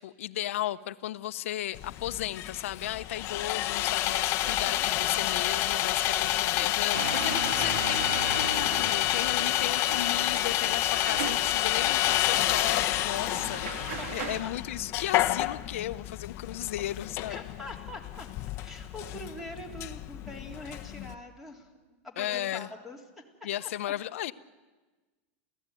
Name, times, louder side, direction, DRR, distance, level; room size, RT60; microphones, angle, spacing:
voice 1, 0.0-8.1 8.3-17.4 22.2-22.7 23.4-24.3, left 13 dB, 80° left, 12 dB, 0.9 m, -35 dB
Sawing, 1.7-21.1, left 15 dB, 40° left, 1.0 m, -29 dB
sound 1, 4.4-7.2, right 2 dB, 25° right, 2.1 m, -46 dB
voice 2, 6.1-6.4 14.0-14.5 17.3-18.3 18.6-21.7 22.0-23.0 23.6-23.7, left 2 dB, 5° right, 2 dB, 3.8 m, -43 dB
sound 2, 6.9-14.4, right 5 dB, 85° right, 2.5 m, -37 dB
28.0 x 16.0 x 9.3 m, 1.3 s
supercardioid pair, 145°, 7 cm